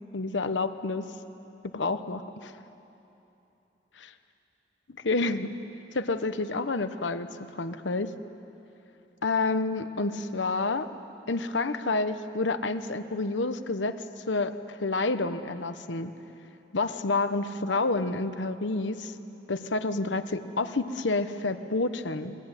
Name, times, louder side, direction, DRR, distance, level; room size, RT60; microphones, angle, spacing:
voice 1, 0.1-1.1 1.7-2.5 5.0-5.5 5.9-7.3 7.6-8.1 9.2-10.9 11.3-14.0 14.3-16.1 16.7-19.1 19.5-22.4, left 3 dB, 85° left, 10 dB, 1.0 m, -29 dB
28.0 x 21.0 x 9.9 m, 3.0 s
head